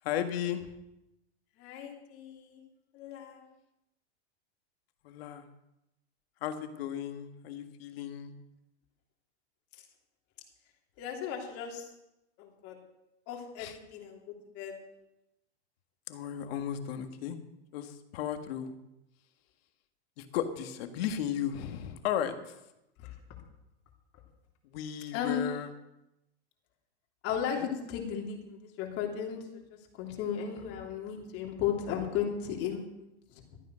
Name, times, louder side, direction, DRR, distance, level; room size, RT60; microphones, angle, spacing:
voice 1, 0.0-0.7 5.0-5.5 6.4-8.3 13.6-13.8 16.1-17.4 17.7-18.7 20.2-22.5 24.6-25.7 27.5-27.7, left 9 dB, 60° left, 7 dB, 1.8 m, -35 dB
voice 2, 1.6-2.6 2.9-3.4 11.0-11.9 12.4-12.7 13.3-14.2 14.5-14.7 23.0-23.1 25.1-25.4 27.2-33.6, left 8 dB, 40° left, 0 dB, 3.3 m, -35 dB
13.5 x 9.4 x 6.4 m, 0.90 s
hypercardioid pair, 130°, 34 cm